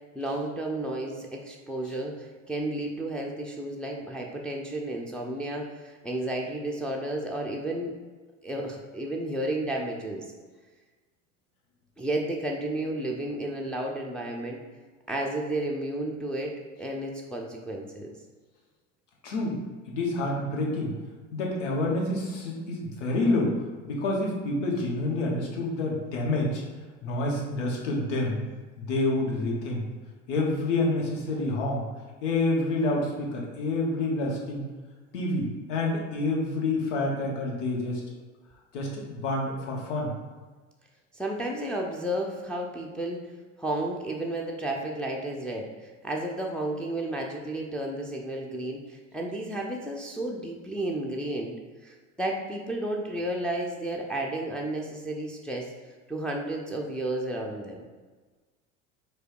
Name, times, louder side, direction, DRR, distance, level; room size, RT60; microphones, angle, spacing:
voice 1, 0.1-7.9 8.4-10.2 12.0-14.6 15.1-18.1 41.1-43.3 43.6-51.5 51.8-55.7 56.1-57.8, right 1 dB, ahead, -1 dB, 0.6 m, -32 dB
voice 2, 19.2-19.6 19.9-20.9 21.3-23.5 23.8-26.6 27.0-28.4 28.8-29.8 30.3-31.8 32.2-34.6 35.1-38.0 38.7-40.1, left 2 dB, 70° left, -2 dB, 1.3 m, -28 dB
4.7 x 2.3 x 4.6 m, 1.3 s
hypercardioid pair, 70°, 38 cm